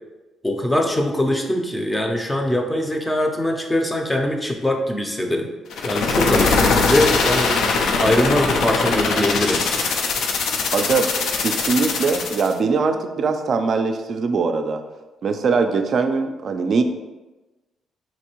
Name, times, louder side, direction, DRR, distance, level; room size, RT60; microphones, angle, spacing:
voice 1, 0.4-5.5 5.8-7.5 8.0-9.7, left 1 dB, 10° left, 2 dB, 0.5 m, -22 dB
sound 1, 5.7-12.5, left 4 dB, 75° left, 0.4 m, -21 dB
voice 2, 10.7-11.1 11.4-14.8 15.2-16.8, right 4 dB, 55° right, 7 dB, 0.3 m, -21 dB
4.1 x 2.6 x 2.9 m, 1.1 s
cardioid pair, 90°, 0 cm